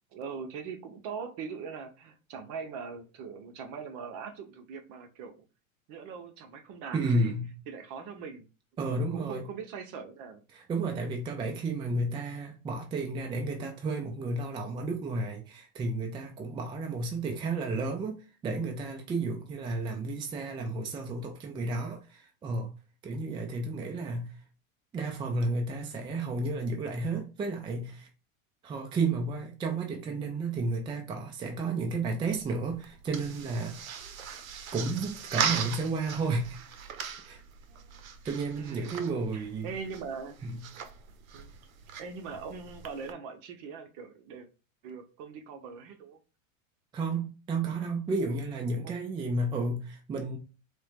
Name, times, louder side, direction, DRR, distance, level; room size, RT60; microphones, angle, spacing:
voice 1, 0.1-5.4 5.9-7.3 7.7-8.5 9.1-10.4 38.5-40.4 41.3-41.5 42.0-44.5 44.8-46.2 48.8-49.0, right 6 dB, 45° right, 0.9 m, -41 dB
voice 2, 6.9-7.5 8.8-9.4 10.5-22.7 23.0-24.4 24.9-28.1 28.6-33.8 34.7-36.6 37.2-37.4 38.2-39.7 40.4-40.6 46.9-50.4, right 3 dB, 15° right, 0.4 m, -32 dB
sound 1, 32.2-43.1, right 7 dB, 85° right, 0.7 m, -39 dB
4.3 x 2.2 x 2.5 m
hypercardioid pair, 110°, 41 cm